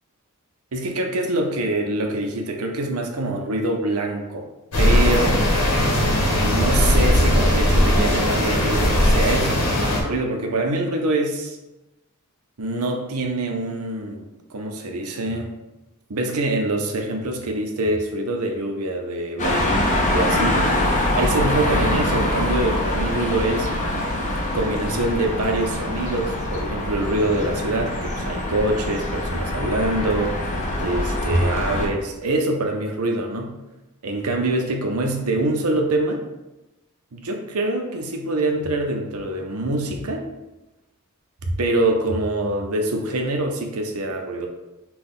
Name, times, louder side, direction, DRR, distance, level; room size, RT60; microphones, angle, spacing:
voice 1, 0.7-4.5 4.8-5.5 6.4-9.6 10.0-11.6 12.6-15.5 16.1-20.6 21.1-23.7 24.5-30.4 30.8-33.5 34.0-36.2 37.1-40.2 41.4-44.5, right 2 dB, 75° right, 3 dB, 0.7 m, -24 dB
sound 1, 4.7-10.0, left 1 dB, 90° left, 1.2 m, -18 dB
sound 2, 19.4-31.9, left 1 dB, 35° left, 0.7 m, -24 dB
6.0 x 2.3 x 3.7 m, 1.0 s
head